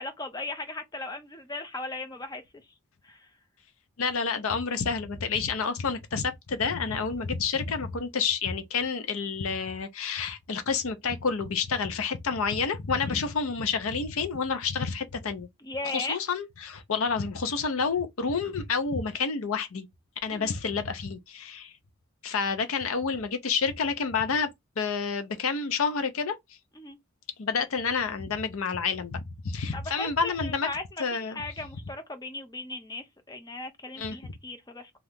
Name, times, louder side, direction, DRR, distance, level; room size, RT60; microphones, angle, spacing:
voice 1, 0.0-2.4 3.0-3.3 13.1-13.2 15.6-16.2 20.3-20.6 26.8-27.0 29.7-34.9, left 2 dB, 15° left, 0.5 m, -37 dB
voice 2, 4.0-15.5 15.9-19.9 20.2-21.7 22.2-24.5 24.8-26.4 27.4-30.7 31.0-31.4 34.0-34.2, left 5 dB, 70° left, 0.6 m, -29 dB
2.8 x 2.4 x 3.4 m
head